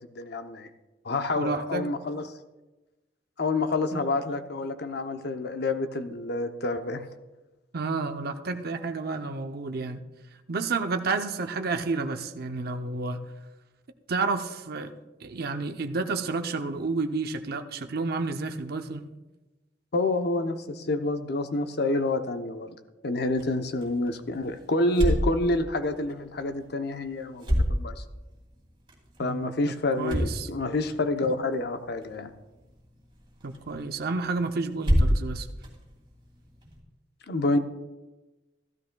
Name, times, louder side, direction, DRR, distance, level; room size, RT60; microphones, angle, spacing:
voice 1, 0.1-0.7 1.0-2.3 3.4-7.1 19.9-22.8 23.0-28.0 29.2-32.3 37.3-37.6, left 2 dB, 60° left, 8 dB, 0.7 m, -28 dB
voice 2, 1.4-1.9 3.9-4.1 7.7-10.0 10.5-13.2 14.1-14.9 15.2-19.1 29.2-29.6 30.0-30.5 33.4-35.5, right 3 dB, 55° right, 6 dB, 0.6 m, -30 dB
sound 1, 23.2-36.8, equal, 25° right, 2.6 m, -32 dB
14.5 x 13.0 x 2.3 m, 1.1 s
head